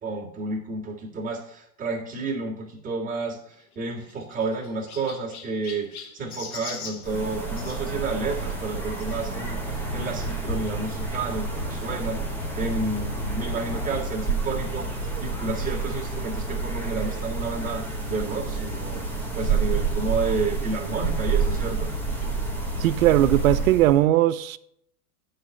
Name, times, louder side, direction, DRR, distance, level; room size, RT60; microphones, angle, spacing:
voice 1, 0.0-12.2 12.6-19.0 19.3-21.9, right 3 dB, 20° right, 1.8 m, -31 dB
Chirp tweet, 3.5-7.8 9.0-9.2 9.9-10.0 10.2-10.3 11.6-11.7, left 6 dB, 80° left, 1.3 m, -41 dB
sound 1, 7.0-24.0, right 3 dB, 5° left, 1.0 m, -29 dB
voice 2, 22.8-24.6, right 14 dB, 70° right, 0.6 m, -19 dB
9.6 x 4.1 x 6.4 m
hypercardioid pair, 135°, 43 cm